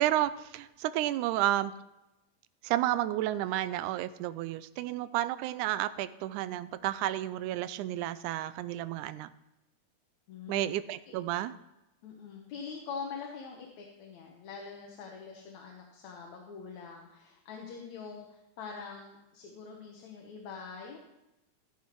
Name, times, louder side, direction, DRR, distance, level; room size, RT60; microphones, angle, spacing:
voice 1, 0.0-1.7 2.6-9.3 10.5-11.6, right 14 dB, 80° right, 14 dB, 1.9 m, -31 dB
voice 2, 10.3-10.7 12.0-21.0, left 5 dB, 65° left, 1 dB, 2.4 m, -44 dB
15.0 x 7.0 x 4.6 m, 0.95 s
omnidirectional pair, 3.7 m